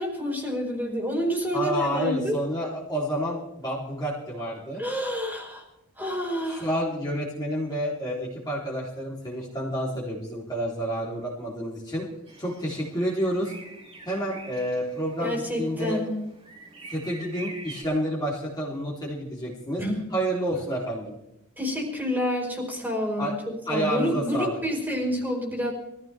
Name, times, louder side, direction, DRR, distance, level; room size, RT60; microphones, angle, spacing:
voice 1, 0.0-2.4 4.8-5.7 5.9-6.7 15.2-16.2 19.8-20.0 21.6-23.4 23.7-25.7, equal, 10° right, -1 dB, 4.5 m, -28 dB
voice 2, 1.5-4.8 6.6-12.1 12.4-13.5 14.1-16.0 16.9-19.8 20.1-21.1 23.2-23.3 23.7-24.6, equal, 20° left, -5 dB, 3.5 m, -29 dB
sound 1, 12.3-17.8, right 2 dB, 25° right, 4.2 m, -45 dB
23.5 x 15.5 x 3.5 m, 0.86 s
head